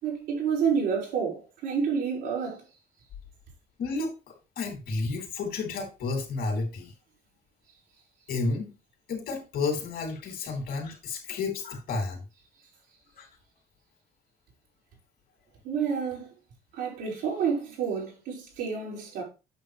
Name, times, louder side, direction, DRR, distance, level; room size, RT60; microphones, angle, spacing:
voice 1, 0.0-2.6 15.6-16.3 16.7-19.2, right 6 dB, 85° right, 5.0 m, -29 dB
voice 2, 3.8-4.1 4.6-6.9 8.3-8.7 9.1-12.2 13.2-13.3, left 3 dB, 70° left, 3.1 m, -31 dB
8.8 x 6.3 x 3.4 m
cardioid pair, 110°, 17 cm